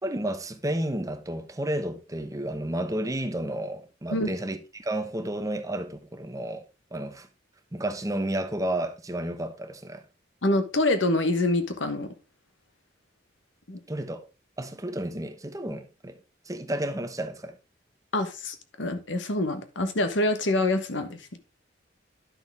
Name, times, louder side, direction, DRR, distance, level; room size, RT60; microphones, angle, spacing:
voice 1, 0.0-7.3 7.7-10.0 13.9-14.3 14.6-16.2 16.5-17.6, right 1 dB, 20° right, 1.0 m, -31 dB
voice 2, 10.4-12.1 13.7-13.8 18.1-21.4, left 2 dB, 80° left, 1.2 m, -26 dB
11.0 x 6.2 x 3.5 m
head